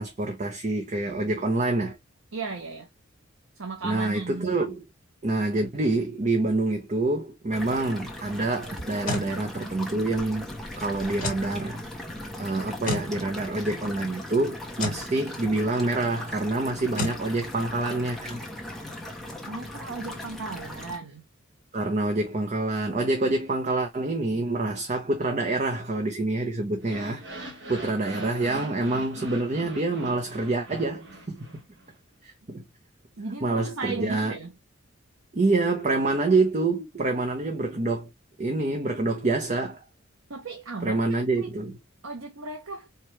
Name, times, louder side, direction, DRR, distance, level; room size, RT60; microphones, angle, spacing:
voice 1, 0.0-2.0 3.8-4.8 5.2-10.5 10.8-11.8 12.4-18.4 21.7-27.2 27.7-31.6 32.2-32.6 33.4-34.3 35.3-38.1 38.4-39.8 40.8-41.8, right 2 dB, 35° right, 0.7 m, -27 dB
voice 2, 2.3-2.9 3.6-4.6 19.5-21.2 33.2-34.5 40.3-41.0 41.4-41.5 42.0-42.9, right 4 dB, 80° right, 0.9 m, -36 dB
sound 1, 7.5-21.0, left 1 dB, ahead, 1.0 m, -38 dB
sound 2, 8.8-9.3 11.2-11.5 12.9-13.1 14.8-15.0 17.0-17.2, left 1 dB, 45° left, 1.4 m, -30 dB
sound 3, 26.8-31.9, right 1 dB, 60° right, 1.2 m, -42 dB
4.7 x 2.4 x 3.1 m
head